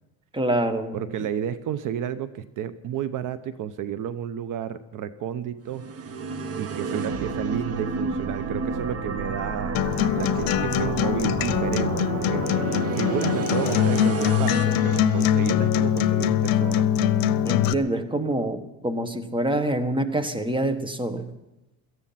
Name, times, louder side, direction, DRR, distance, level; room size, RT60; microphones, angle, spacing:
voice 1, 0.3-1.0 17.4-21.3, right 1 dB, 15° right, 10 dB, 1.6 m, -26 dB
voice 2, 0.9-6.1 6.6-9.8 10.1-16.9, right 9 dB, 60° right, 14 dB, 0.9 m, -32 dB
sound 1, 5.7-15.9, right 4 dB, 40° right, 1.4 m, -30 dB
Acoustic guitar, 9.7-17.7, left 10 dB, 70° left, 0.9 m, -23 dB
18.0 x 14.0 x 5.8 m, 0.95 s
cardioid pair, 135°, 36 cm